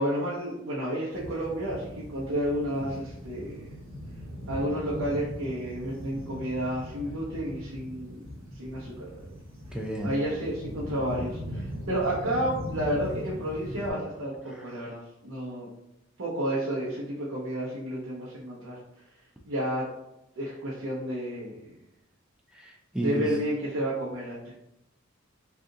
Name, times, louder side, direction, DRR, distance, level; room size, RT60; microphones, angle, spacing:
voice 1, 0.0-3.7 4.5-8.3 8.5-9.0 10.0-15.7 16.2-18.8 19.4-19.9 20.3-21.7 23.0-24.5, equal, 75° right, -6 dB, 0.7 m, -31 dB
sound 1, 1.1-13.9, equal, 90° right, 1.0 m, -39 dB
voice 2, 9.7-10.1 14.5-14.7 22.5-23.3, right 1 dB, 5° right, 0 dB, 0.4 m, -33 dB
3.7 x 2.4 x 2.6 m, 0.85 s
head